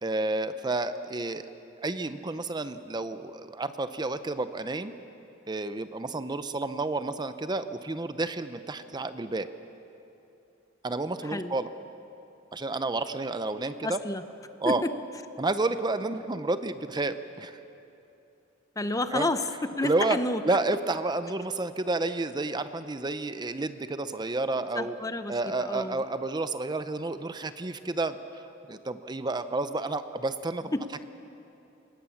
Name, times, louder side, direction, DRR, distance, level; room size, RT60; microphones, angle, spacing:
voice 1, 0.0-1.5 1.8-4.9 5.5-9.5 10.8-11.7 12.5-14.0 14.6-14.8 15.4-17.6 19.1-19.3 19.8-20.2 20.4-24.9 25.3-30.7, right 2 dB, 20° right, 11 dB, 0.6 m, -30 dB
voice 2, 11.2-11.5 13.8-14.2 14.7-14.9 18.8-20.4 24.8-26.0 30.7-30.9, left 2 dB, 15° left, 10 dB, 0.7 m, -30 dB
25.5 x 19.5 x 7.1 m, 2.9 s
head